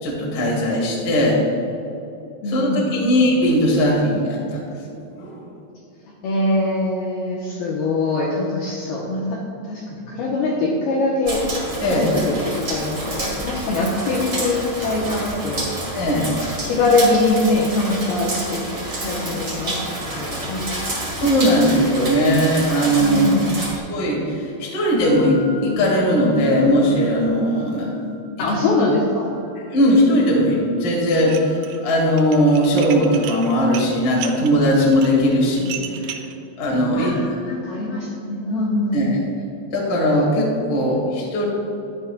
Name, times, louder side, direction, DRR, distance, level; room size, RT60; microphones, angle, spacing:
voice 1, 0.0-1.4 2.5-4.6 5.2-5.4 11.8-12.1 15.9-16.3 21.2-23.2 23.9-27.9 29.7-35.8 36.1-36.2 36.6-37.1 38.9-39.2 39.7-41.4, equal, 60° left, -4 dB, 0.9 m, -19 dB
voice 2, 2.4-2.9 6.2-11.5 11.9-15.7 16.4-18.6 19.0-21.1 23.0-23.7 28.4-29.3 36.9-39.1, left 2 dB, 80° left, -4 dB, 2.2 m, -23 dB
sound 1, 11.2-23.8, right 1 dB, 35° right, 1.6 m, -29 dB
sound 2, 24.9-35.0, left 1 dB, 60° right, 3.5 m, -34 dB
Dishes pots and pans, 31.2-31.8 32.1-36.3, right 10 dB, 85° right, 2.7 m, -34 dB
12.5 x 10.5 x 2.3 m, 2.8 s
omnidirectional pair, 5.7 m